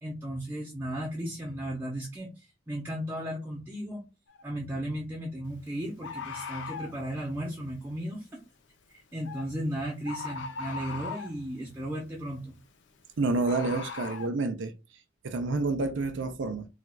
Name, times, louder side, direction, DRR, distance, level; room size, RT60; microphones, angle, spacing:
voice 1, 0.0-4.0 4.4-8.4 8.9-12.6, equal, 10° right, 0.6 m, -35 dB
Bird, 4.3-4.4 6.0-7.0 9.3-9.5 10.1-11.4 13.4-14.3, left 5 dB, 70° left, 0.6 m, -38 dB
voice 2, 13.2-14.7 15.2-16.7, right 3 dB, 70° right, 0.5 m, -29 dB
4.2 x 2.3 x 2.2 m
head